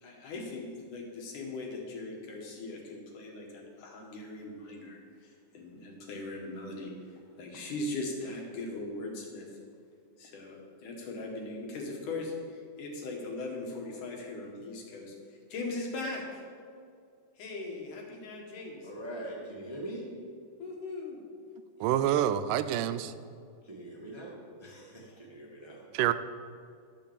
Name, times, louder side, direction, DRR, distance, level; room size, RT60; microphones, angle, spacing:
voice 1, 0.0-6.9 7.4-9.5 10.2-15.1 15.5-16.4 17.4-18.9 20.6-21.2 21.8-21.9 25.0-25.2, left 2 dB, 75° left, 0 dB, 3.2 m, -39 dB
voice 2, 18.9-20.1 23.7-25.9, right 1 dB, 15° right, -4 dB, 1.0 m, -42 dB
voice 3, 21.8-23.1 25.9-26.1, right 11 dB, 85° right, 12 dB, 2.1 m, -27 dB
11.5 x 6.7 x 7.3 m, 2.3 s
omnidirectional pair, 3.7 m